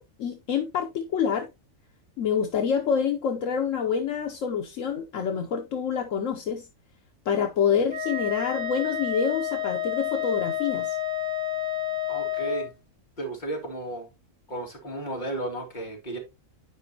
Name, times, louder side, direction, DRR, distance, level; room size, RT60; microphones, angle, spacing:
voice 1, 0.0-1.5 2.2-6.7 7.3-11.0, left 7 dB, 70° left, 1.2 m, -27 dB
Wind instrument woodwind instrument, 7.9-12.7, left 8 dB, 30° right, 2.2 m, -30 dB
voice 2, 12.1-12.7 13.2-14.1 14.5-16.2, right 2 dB, 35° left, 2.5 m, -33 dB
10.0 x 5.1 x 2.9 m
omnidirectional pair, 1.4 m